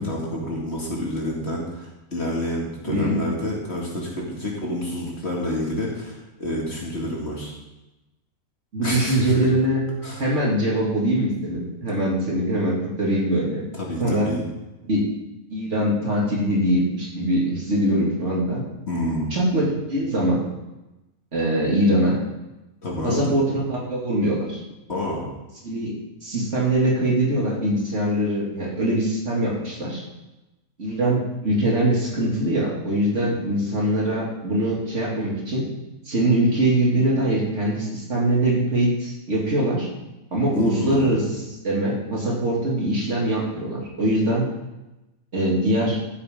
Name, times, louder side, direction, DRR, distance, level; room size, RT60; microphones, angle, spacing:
voice 1, 0.0-7.6 8.8-9.5 10.0-10.3 13.7-14.5 18.9-19.3 22.8-23.3 24.9-25.3 40.5-41.2, left 1 dB, 45° left, -3 dB, 2.3 m, -28 dB
voice 2, 8.7-9.8 10.2-13.6 14.0-14.3 14.9-15.0 15.5-18.6 19.3-20.4 21.3-22.2 23.0-24.6 25.6-25.9 26.2-30.0 30.8-35.7 36.0-39.9 40.3-44.5 45.3-46.0, right 1 dB, 50° right, -4 dB, 2.8 m, -22 dB
14.0 x 7.7 x 3.7 m, 1.0 s
omnidirectional pair, 1.6 m